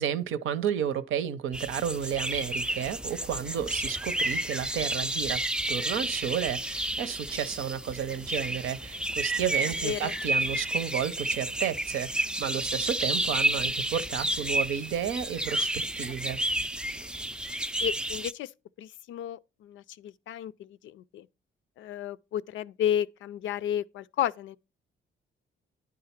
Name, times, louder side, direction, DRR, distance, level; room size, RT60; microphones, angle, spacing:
voice 1, 0.0-5.4 5.7-16.4, right 9 dB, 85° right, 0.8 m, -32 dB
sound 1, 1.5-18.3, right 1 dB, 5° right, 0.3 m, -31 dB
voice 2, 9.8-10.1 16.0-16.1 17.8-18.5 18.8-21.3 21.8-24.6, left 10 dB, 75° left, 0.5 m, -32 dB
10.5 x 3.8 x 5.8 m
cardioid pair, 90°, 20 cm